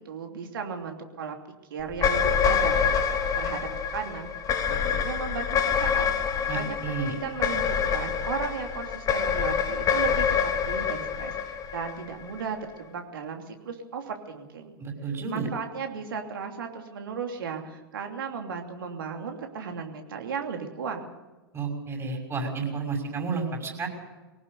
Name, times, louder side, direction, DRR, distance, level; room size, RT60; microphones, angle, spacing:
voice 1, 0.0-1.3 1.7-3.0 3.4-4.3 4.7-6.1 6.5-10.2 10.7-14.8 15.3-21.1, right 6 dB, 65° right, 4 dB, 2.9 m, -35 dB
sound 1, 1.9-12.4, left 7 dB, 25° left, 2.2 m, -26 dB
voice 2, 6.5-7.2 14.8-15.5 21.5-23.9, right 4 dB, 20° right, 2 dB, 6.0 m, -31 dB
21.5 x 18.5 x 6.8 m, 1.2 s
figure-of-eight pair, 95°, 12 cm